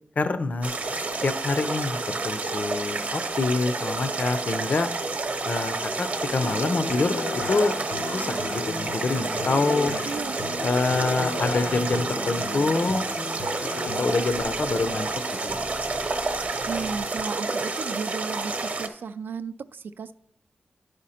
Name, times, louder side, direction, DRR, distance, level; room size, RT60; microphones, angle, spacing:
voice 1, 0.2-4.9 5.5-7.7 8.1-9.9 10.6-13.1 14.0-15.1 15.4-15.6, left 3 dB, 50° left, 11 dB, 0.5 m, -26 dB
sound 1, 0.6-18.9, right 3 dB, 45° right, 0.8 m, -30 dB
sound 2, 5.8-17.2, right 1 dB, 10° right, 0.5 m, -43 dB
Human voice / Acoustic guitar, 6.4-14.4, left 3 dB, 80° left, 0.8 m, -35 dB
voice 2, 10.1-10.4 16.7-20.1, right 5 dB, 80° right, 12 dB, 0.4 m, -34 dB
10.5 x 5.1 x 4.2 m, 0.69 s
wide cardioid pair, 125°, 3 cm